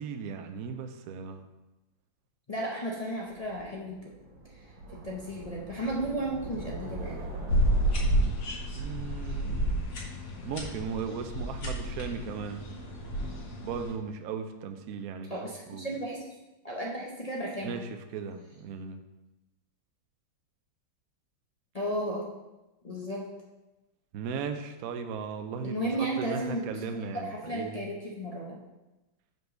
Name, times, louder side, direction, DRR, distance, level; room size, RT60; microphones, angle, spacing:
voice 1, 0.0-1.4 8.7-10.0 10.4-12.6 13.6-15.3 15.7-15.9 17.6-19.0 24.1-27.8, right 6 dB, 70° right, 7 dB, 0.9 m, -37 dB
voice 2, 2.5-4.0 4.9-7.2 8.2-8.3 15.3-16.2 16.6-17.8 21.7-22.3 22.8-23.3 25.6-26.6 27.1-28.6, right 1 dB, 45° left, -4 dB, 0.5 m, -34 dB
sound 1, 3.3-10.4, right 1 dB, 90° right, 2.4 m, -43 dB
sound 2, 7.5-13.9, right 1 dB, 75° left, 2.1 m, -30 dB
5.3 x 4.6 x 6.3 m, 1.0 s
omnidirectional pair, 2.1 m